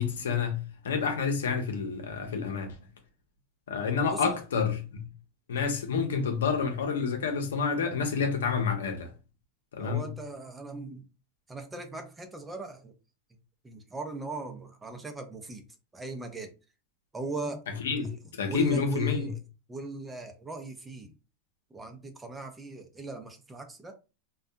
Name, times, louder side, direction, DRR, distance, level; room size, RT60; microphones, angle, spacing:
voice 1, 0.0-2.7 3.7-5.0 5.5-9.1 9.7-10.1 17.8-18.1 18.4-19.2, left 5 dB, 85° left, 0.7 m, -28 dB
voice 2, 4.1-4.4 9.8-11.1 11.5-12.9 13.6-15.6 15.9-16.5 17.1-17.6 18.0-18.2 18.5-19.4 19.7-21.1 21.7-23.9, right 2 dB, 15° right, 0.6 m, -39 dB
2.6 x 2.3 x 2.2 m
hypercardioid pair, 110°, 0 cm